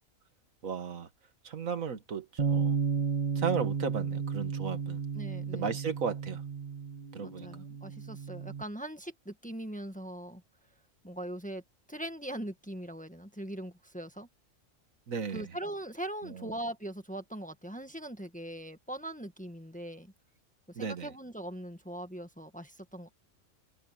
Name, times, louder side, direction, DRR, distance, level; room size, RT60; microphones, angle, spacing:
voice 1, 0.6-1.1 1.4-3.0 3.4-5.0 5.5-6.4 7.1-7.5 15.1-15.5 16.3-16.5 20.8-21.1, right 6 dB, 85° right, 1.8 m, -35 dB
Bass guitar, 2.4-8.6, right 6 dB, 35° right, 1.7 m, -33 dB
voice 2, 5.1-5.7 7.2-10.4 11.0-11.6 11.9-14.3 15.3-20.1 20.7-23.1, right 1 dB, 5° left, 1.5 m, -41 dB
omnidirectional pair, 1.4 m